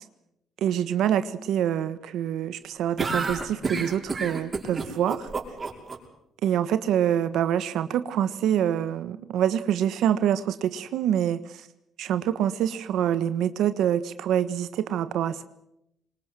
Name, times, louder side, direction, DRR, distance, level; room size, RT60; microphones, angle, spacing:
voice 1, 0.6-5.3 6.4-11.7 12.0-15.4, right 10 dB, 80° right, 1.3 m, -26 dB
sound 1, 3.0-6.0, right 4 dB, 35° right, 6.0 m, -29 dB
25.0 x 21.5 x 7.6 m
cardioid pair, 90°, 0 cm